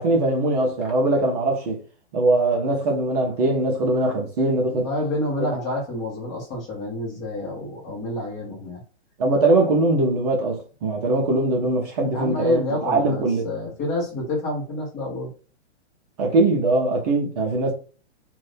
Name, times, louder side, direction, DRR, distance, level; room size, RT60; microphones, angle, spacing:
voice 1, 0.0-1.8 2.1-4.9 5.5-5.6 9.2-13.5 16.2-17.7, right 2 dB, 35° right, 0.7 m, -21 dB
voice 2, 4.7-8.8 12.1-15.3, left 2 dB, 20° left, 1.2 m, -28 dB
2.7 x 2.6 x 3.3 m
hypercardioid pair, 160°, 34 cm